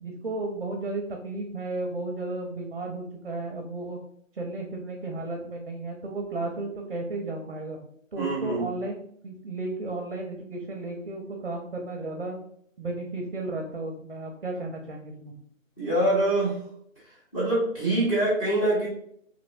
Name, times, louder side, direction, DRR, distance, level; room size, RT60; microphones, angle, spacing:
voice 1, 0.0-4.0 4.3-7.8 8.1-9.0 9.2-12.4 12.8-15.3, right 2 dB, 45° right, 2 dB, 0.5 m, -34 dB
voice 2, 8.2-8.7 15.8-16.6 17.3-18.9, right 1 dB, 25° left, -7 dB, 0.9 m, -24 dB
3.0 x 2.9 x 2.6 m, 0.66 s
hypercardioid pair, 170°, 40 cm